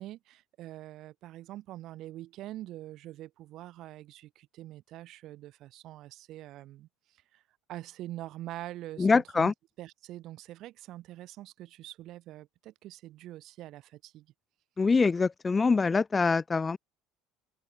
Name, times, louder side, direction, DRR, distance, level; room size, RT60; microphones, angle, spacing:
voice 1, 0.0-7.4 7.7-14.3, right 15 dB, 60° right, 2.0 m, -44 dB
voice 2, 9.0-9.5 14.8-16.8, left 4 dB, 20° left, 0.3 m, -24 dB
open air
supercardioid pair, 105°, 0 cm